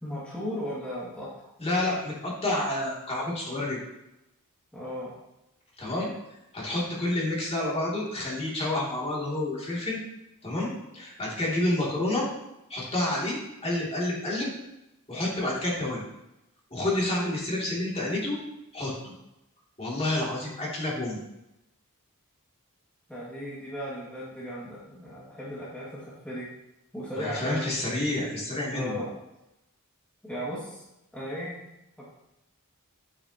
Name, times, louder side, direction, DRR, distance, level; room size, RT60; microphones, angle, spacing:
voice 1, 0.0-1.5 4.7-5.1 23.1-26.5 26.9-27.7 28.7-29.1 30.2-30.8 31.1-31.6 32.0-32.1, equal, 5° left, -9 dB, 2.1 m, -36 dB
voice 2, 1.6-3.8 5.8-6.1 6.5-10.0 10.4-12.2 12.7-14.5 15.1-16.0 16.7-18.4 18.7-18.9 19.8-21.2 27.2-29.0, left 1 dB, 25° left, -5 dB, 2.8 m, -29 dB
10.0 x 8.6 x 3.0 m, 0.89 s
head